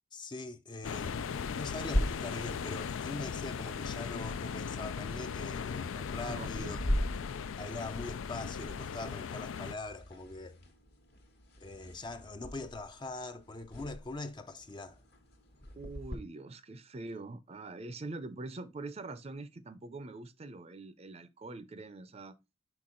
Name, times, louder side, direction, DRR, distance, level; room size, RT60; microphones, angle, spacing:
voice 1, 0.1-6.8 7.6-10.6 11.6-15.0, left 2 dB, 25° left, 0.4 m, -42 dB
sound 1, 0.8-9.7, left 6 dB, 90° left, 0.4 m, -38 dB
sound 2, 1.9-16.2, equal, 55° left, 1.2 m, -40 dB
voice 2, 6.2-6.8 15.8-22.3, right 2 dB, 30° right, 0.5 m, -44 dB
5.9 x 4.5 x 3.7 m
head